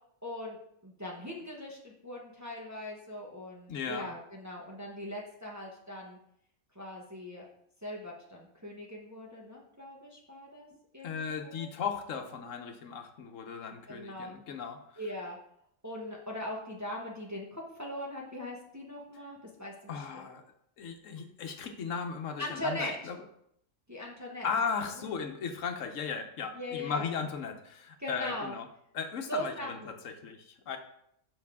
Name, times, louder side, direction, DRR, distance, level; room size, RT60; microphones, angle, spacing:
voice 1, 0.2-6.2 6.7-7.4 7.8-10.7 10.9-11.7 13.9-14.4 15.0-15.4 15.8-20.3 22.4-22.9 23.9-24.5 25.0-25.1 26.5-27.0 28.0-28.5 29.3-29.9, left 1 dB, 15° right, -2 dB, 1.0 m, -40 dB
voice 2, 3.7-4.1 11.0-14.8 19.9-20.4 20.8-23.2 24.4-28.6 28.9-30.8, left 6 dB, 75° left, 5 dB, 1.2 m, -36 dB
7.1 x 5.4 x 3.6 m, 0.71 s
omnidirectional pair, 1.3 m